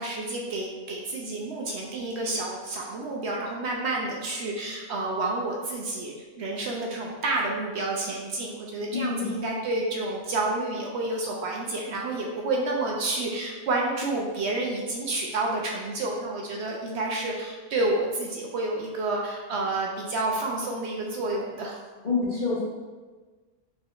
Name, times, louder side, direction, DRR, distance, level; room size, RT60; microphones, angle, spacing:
voice 1, 0.0-21.8, right 2 dB, 70° right, -1 dB, 0.6 m, -29 dB
voice 2, 8.9-9.3 22.0-22.6, left 4 dB, 45° left, -9 dB, 0.9 m, -27 dB
4.1 x 3.9 x 2.4 m, 1.3 s
omnidirectional pair, 1.5 m